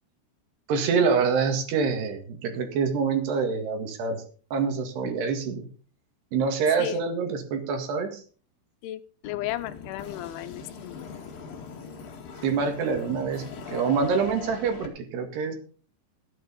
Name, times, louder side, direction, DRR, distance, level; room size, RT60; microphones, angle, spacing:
voice 1, 0.7-4.2 4.5-5.7 6.3-8.2 12.4-15.6, right 5 dB, 65° right, 6 dB, 3.9 m, -26 dB
voice 2, 8.8-11.1, left 14 dB, 90° left, 11 dB, 3.4 m, -34 dB
sound 1, 9.2-14.9, left 6 dB, 55° left, 3.5 m, -41 dB
14.5 x 9.1 x 5.4 m, 0.40 s
omnidirectional pair, 5.3 m